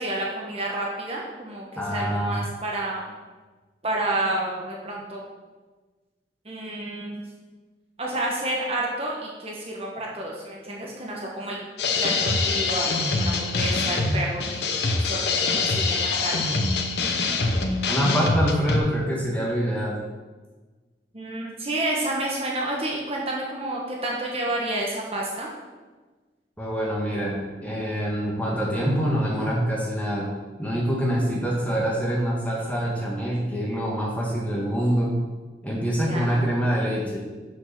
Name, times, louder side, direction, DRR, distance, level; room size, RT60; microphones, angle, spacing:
voice 1, 0.0-3.1 3.8-5.2 6.4-7.2 8.0-11.6 11.9-16.6 21.1-25.5 36.1-36.4, right 1 dB, 35° right, -2 dB, 1.2 m, -30 dB
voice 2, 1.8-2.4 8.0-8.2 9.9-10.0 17.4-17.5 17.9-20.0 26.6-30.3 30.6-35.1 35.6-37.2, equal, 10° left, -4 dB, 1.8 m, -25 dB
sound 1, 11.8-18.8, left 3 dB, 70° left, 0.9 m, -24 dB
6.7 x 6.3 x 6.0 m, 1.3 s
head